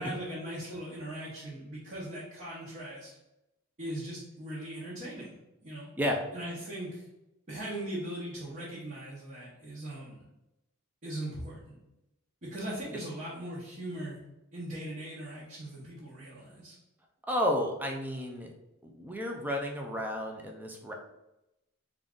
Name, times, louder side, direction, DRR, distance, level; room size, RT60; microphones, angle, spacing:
voice 1, 0.0-3.1 3.8-5.3 5.6-5.9 6.3-7.0 7.5-10.2 11.0-11.8 12.4-14.2 14.5-16.7, right 1 dB, 40° right, -8 dB, 1.1 m, -39 dB
voice 2, 17.3-18.5 18.9-20.9, equal, 10° right, 1 dB, 0.4 m, -31 dB
3.8 x 2.5 x 3.6 m, 0.92 s
head